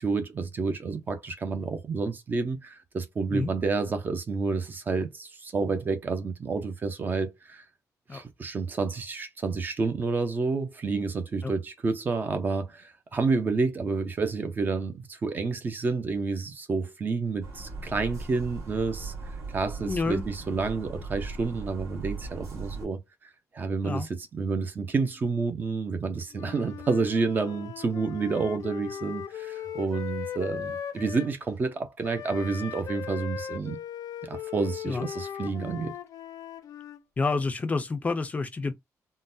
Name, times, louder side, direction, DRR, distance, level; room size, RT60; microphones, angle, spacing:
voice 1, 0.0-7.6 8.1-19.1 19.5-23.0 23.5-33.8 34.2-35.9, right 4 dB, 30° right, 0.5 m, -29 dB
sound 1, 17.4-22.9, right 3 dB, 60° right, 1.8 m, -38 dB
voice 2, 19.8-20.2 23.8-24.1 34.9-35.1 37.2-38.7, left 3 dB, 25° left, 0.4 m, -28 dB
Wind instrument woodwind instrument, 26.3-31.3 32.0-37.0, left 9 dB, 80° left, 0.5 m, -38 dB
3.8 x 2.1 x 2.6 m
wide cardioid pair, 175°, 6 cm